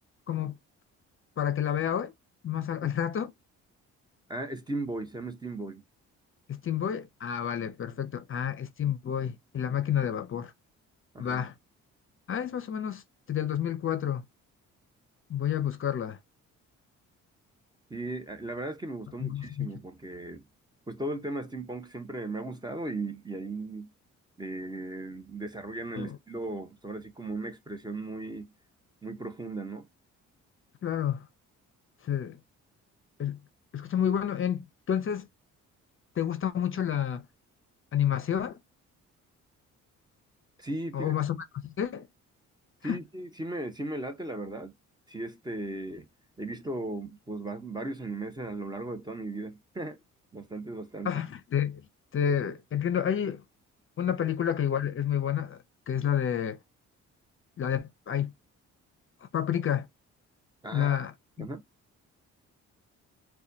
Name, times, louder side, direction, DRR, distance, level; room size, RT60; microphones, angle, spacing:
voice 1, 1.4-2.1 2.4-3.3 6.5-10.5 11.2-11.5 12.3-13.0 13.3-14.2 15.3-16.2 19.2-19.7 26.0-26.2 30.8-31.2 32.0-32.4 33.2-33.4 33.7-35.3 36.2-37.2 37.9-38.6 40.9-41.4 41.6-42.1 42.8-43.0 51.0-51.8 52.1-53.4 54.0-56.6 57.6-58.3 59.3-59.9 60.7-61.1 61.4-61.5, left 9 dB, 45° left, 0.6 m, -29 dB
voice 2, 4.3-5.8 11.1-11.4 17.9-20.4 20.9-23.9 24.4-28.5 29.0-29.9 40.6-41.2 42.8-44.7 45.1-46.1 46.4-50.0 50.3-51.2 60.6-61.0 61.4-61.6, right 2 dB, 15° right, 0.8 m, -37 dB
4.1 x 2.3 x 2.6 m
cardioid pair, 90°, 30 cm